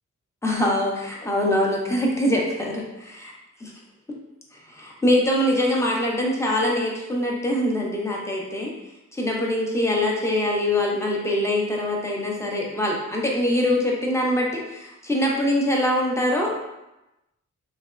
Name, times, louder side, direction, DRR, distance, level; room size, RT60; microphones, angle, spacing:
voice 1, 0.4-3.3 3.6-3.7 4.5-8.7 9.1-16.7, left 1 dB, 10° left, -2 dB, 0.7 m, -23 dB
3.3 x 2.2 x 2.4 m, 0.95 s
cardioid pair, 60°, 31 cm